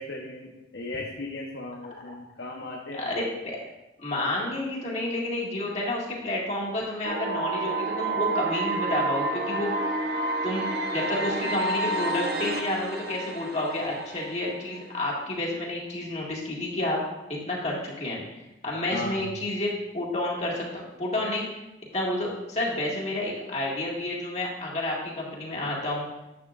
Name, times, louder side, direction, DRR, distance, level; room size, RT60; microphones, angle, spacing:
voice 1, 0.0-3.2 18.9-19.3, left 2 dB, 85° left, -2 dB, 1.0 m, -37 dB
voice 2, 2.9-3.6 4.0-9.7 10.4-10.6 10.9-17.0 17.3-18.2 18.6-21.5 21.9-26.1, left 1 dB, 40° left, -3 dB, 2.0 m, -30 dB
sound 1, 7.0-15.0, right 2 dB, 60° right, 0.8 m, -29 dB
10.5 x 8.1 x 2.5 m, 0.94 s
head